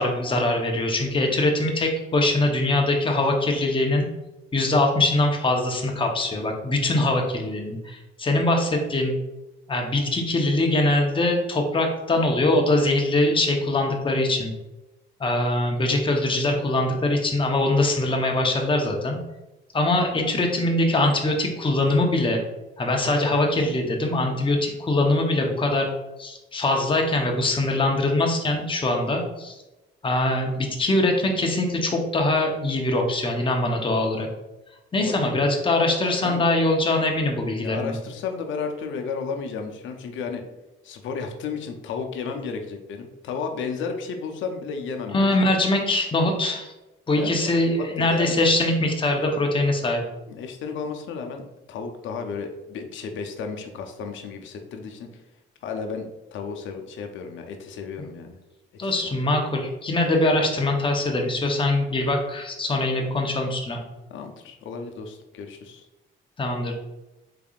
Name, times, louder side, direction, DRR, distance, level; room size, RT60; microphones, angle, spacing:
voice 1, 0.0-4.0 4.5-9.1 9.7-14.5 15.2-19.2 19.7-22.4 22.8-25.9 26.2-29.5 30.0-34.3 34.9-37.9 45.1-46.7 47.1-50.0 58.8-63.8 66.4-66.7, left 2 dB, 25° left, 1 dB, 0.8 m, -22 dB
voice 2, 35.0-35.5 36.2-36.4 37.6-40.4 40.8-45.5 47.2-48.3 50.3-55.1 55.6-58.4 58.8-58.9 64.1-65.8, left 5 dB, 75° left, 4 dB, 0.6 m, -33 dB
3.7 x 3.4 x 2.4 m, 1.0 s
cardioid pair, 90°, 20 cm